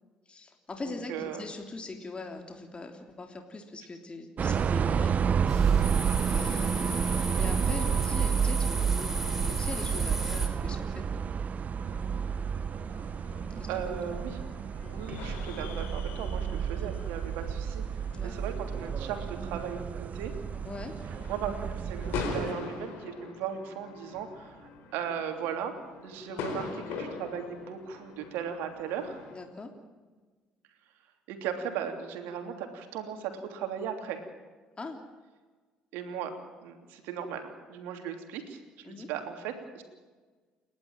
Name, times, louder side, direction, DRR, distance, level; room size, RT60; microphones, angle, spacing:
voice 1, 0.3-5.9 6.2-9.2 9.4-11.3 13.6-13.7 14.8-15.0 16.7-16.9 18.1-18.3 20.6-20.9 26.3-26.6 29.3-29.7 34.8-35.0 38.8-39.1, left 3 dB, 30° left, 4 dB, 3.3 m, -42 dB
voice 2, 0.8-1.4 13.7-14.4 14.9-20.3 21.3-25.7 26.0-29.2 31.3-34.2 35.9-36.3 36.6-39.8, right 8 dB, 70° right, 6 dB, 3.1 m, -37 dB
sound 1, 4.4-22.5, right 7 dB, 45° right, 0.7 m, -30 dB
sound 2, 5.5-10.5, right 1 dB, 10° right, 4.9 m, -36 dB
sound 3, 11.8-29.4, left 4 dB, 70° left, 4.6 m, -43 dB
29.5 x 11.5 x 9.0 m, 1.4 s
hypercardioid pair, 55°, 4 cm